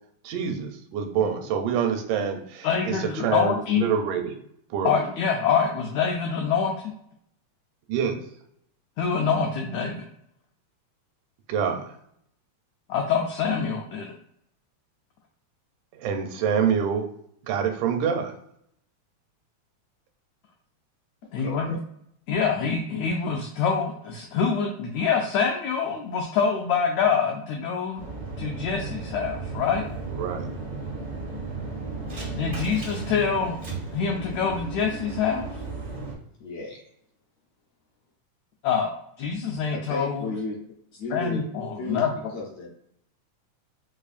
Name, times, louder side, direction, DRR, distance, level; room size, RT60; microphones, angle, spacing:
voice 1, 0.2-4.3 4.7-5.0 7.9-8.2 11.5-11.8 16.0-17.1 17.5-18.4 30.1-30.5, right 7 dB, 85° right, 5 dB, 2.1 m, -26 dB
voice 2, 2.6-3.9 4.8-6.9 9.0-10.1 12.9-14.1 21.3-21.8 22.3-28.0 28.4-29.9 32.3-33.6 33.9-35.5 38.6-38.9 39.2-40.3 41.1-42.1, left 6 dB, 90° left, 1 dB, 1.5 m, -25 dB
voice 3, 21.4-21.8 36.4-36.8 39.7-40.6 41.0-41.4 41.8-42.1 42.3-42.7, left 3 dB, 75° left, -2 dB, 1.7 m, -33 dB
sound 1, 28.0-36.1, right 3 dB, 60° right, 0.4 m, -35 dB
4.9 x 2.4 x 2.4 m, 0.72 s
omnidirectional pair, 3.6 m